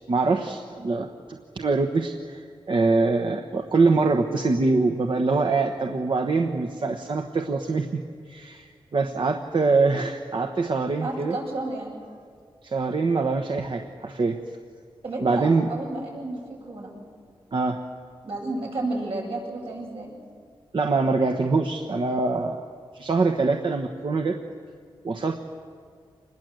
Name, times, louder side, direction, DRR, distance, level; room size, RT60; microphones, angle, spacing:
voice 1, 0.0-8.0 8.3-11.4 12.6-14.4 15.2-15.7 17.5-17.8 20.7-22.7 22.9-24.4 25.0-25.4, right 3 dB, 60° right, 4 dB, 1.2 m, -24 dB
voice 2, 11.0-11.9 15.0-17.0 18.2-20.1, right 2 dB, 80° right, -3 dB, 7.9 m, -32 dB
26.0 x 21.0 x 7.9 m, 2.1 s
wide cardioid pair, 80°, 10 cm